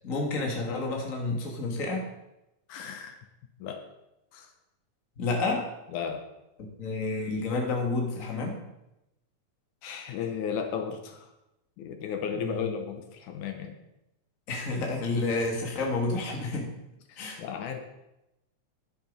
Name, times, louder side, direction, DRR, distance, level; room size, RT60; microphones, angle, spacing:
voice 1, 0.0-2.0 5.2-5.7 6.8-8.6 12.3-12.7 14.5-16.6 17.2-17.4, left 3 dB, 30° left, 0 dB, 1.8 m, -30 dB
voice 2, 2.7-3.2 3.6-3.8 4.3-4.5 5.9-6.2 9.8-11.3 11.8-13.7 17.1-17.8, left 7 dB, 80° left, 5 dB, 2.3 m, -34 dB
10.5 x 7.7 x 5.3 m, 0.91 s
omnidirectional pair, 3.6 m